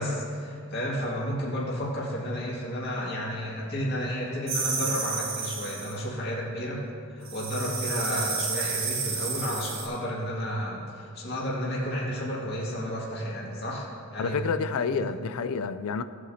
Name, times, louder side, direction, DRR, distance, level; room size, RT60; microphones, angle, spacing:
voice 1, 0.0-6.8 7.1-14.4 14.9-15.1, equal, 50° left, -5 dB, 2.1 m, -32 dB
sound 1, 4.5-6.0 7.2-9.8, right 5 dB, 75° right, 2.5 m, -31 dB
voice 2, 14.2-16.0, left 5 dB, 85° left, 11 dB, 0.4 m, -29 dB
17.5 x 8.2 x 2.8 m, 2.3 s
head